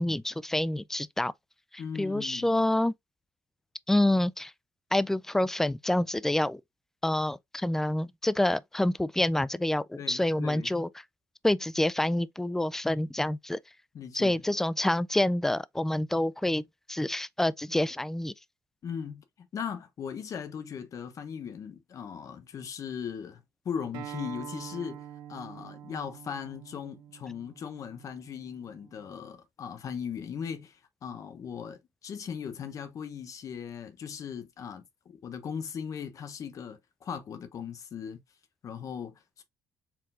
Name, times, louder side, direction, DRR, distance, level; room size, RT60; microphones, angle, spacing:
voice 1, 0.0-1.3 1.7-2.9 3.9-4.5 4.9-6.6 7.0-10.9 11.4-13.6 14.1-16.6 16.9-18.3, left 1 dB, 5° left, 0.3 m, -27 dB
voice 2, 1.8-2.5 9.9-10.7 13.9-14.4 18.8-19.2 19.5-25.0 25.3-38.2 38.6-39.4, left 7 dB, 50° left, 0.9 m, -38 dB
Acoustic guitar, 23.9-29.1, right 10 dB, 85° right, 0.7 m, -46 dB
4.6 x 3.7 x 2.4 m
cardioid pair, 95°, 7 cm